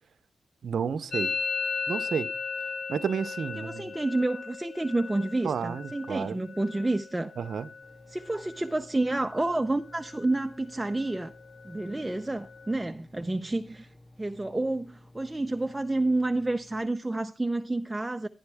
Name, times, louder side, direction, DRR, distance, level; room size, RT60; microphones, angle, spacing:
voice 1, 0.6-1.3 1.9-2.3 2.9-3.9 5.4-6.4 7.4-7.7, right 7 dB, 70° right, 0.7 m, -31 dB
Musical instrument, 1.1-8.8 9.0-9.6 9.9-10.4 10.7-12.7, left 5 dB, 70° left, 1.4 m, -37 dB
voice 2, 3.6-7.3 8.1-11.3 11.6-13.9 14.2-18.3, right 2 dB, 15° right, 0.6 m, -29 dB
Engine, 7.8-16.8, left 1 dB, 35° left, 2.7 m, -55 dB
11.5 x 11.0 x 3.5 m
cardioid pair, 75°, 0 cm